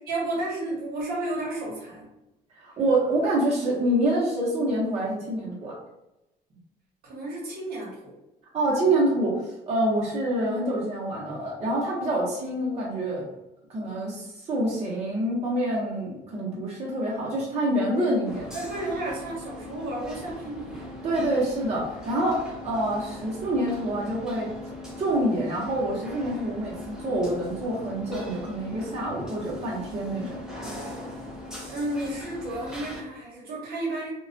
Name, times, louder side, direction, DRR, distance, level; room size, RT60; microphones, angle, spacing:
voice 1, 0.0-2.1 7.0-8.1 18.5-20.9 31.6-34.1, right 2 dB, 65° right, -4 dB, 0.9 m, -32 dB
voice 2, 2.5-5.7 8.5-13.2 13.7-18.5 21.0-24.5 25.0-30.4, right 1 dB, 40° right, -5 dB, 0.8 m, -26 dB
sound 1, 18.2-33.0, left 1 dB, 5° right, 0.6 m, -40 dB
2.3 x 2.2 x 2.5 m, 0.91 s
cardioid pair, 110°, 17 cm